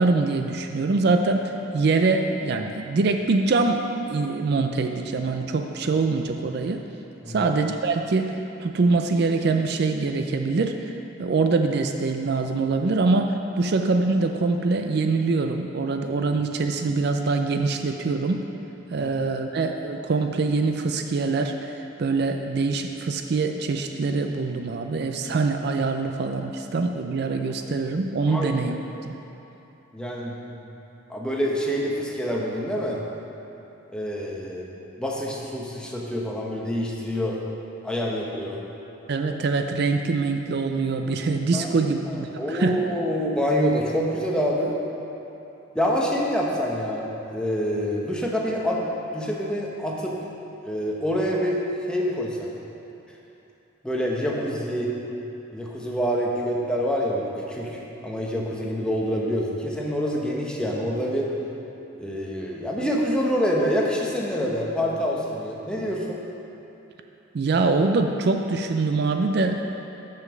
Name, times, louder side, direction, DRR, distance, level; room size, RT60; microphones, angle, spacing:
voice 1, 0.0-6.8 7.3-10.9 11.2-18.4 18.9-28.8 29.0-29.1 39.1-42.8 67.3-69.6, right 3 dB, 55° right, 5 dB, 0.4 m, -24 dB
voice 2, 28.3-28.8 29.9-30.5 31.1-33.0 33.9-37.4 37.8-38.6 41.5-44.8 45.7-48.8 49.1-50.2 50.6-52.5 53.8-54.9 55.5-61.3 62.0-66.2, equal, 5° left, -3 dB, 0.8 m, -26 dB
6.9 x 6.4 x 6.2 m, 2.9 s
head